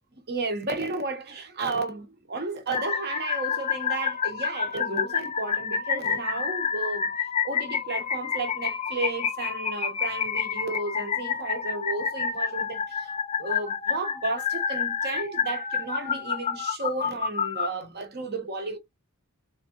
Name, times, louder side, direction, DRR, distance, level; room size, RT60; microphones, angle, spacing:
voice 1, 0.3-7.2 7.4-13.1 13.4-18.8, right 3 dB, 45° right, 1.0 m, -33 dB
sound 1, 2.7-17.7, left 6 dB, 30° left, 0.4 m, -29 dB
3.6 x 3.3 x 2.9 m
head